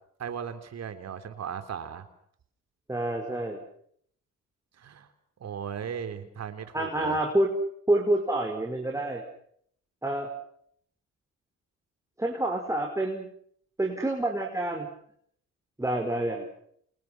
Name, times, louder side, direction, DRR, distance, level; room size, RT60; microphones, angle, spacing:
voice 1, 0.2-2.1 4.8-5.1 5.4-7.2, right 7 dB, 60° right, 9 dB, 3.5 m, -37 dB
voice 2, 2.9-3.6 6.7-7.5 7.9-9.2 10.0-10.3 12.2-13.3 13.8-14.9 15.8-16.5, right 1 dB, 10° right, 1 dB, 5.1 m, -27 dB
29.0 x 28.0 x 6.0 m, 0.66 s
cardioid pair, 90°, 30 cm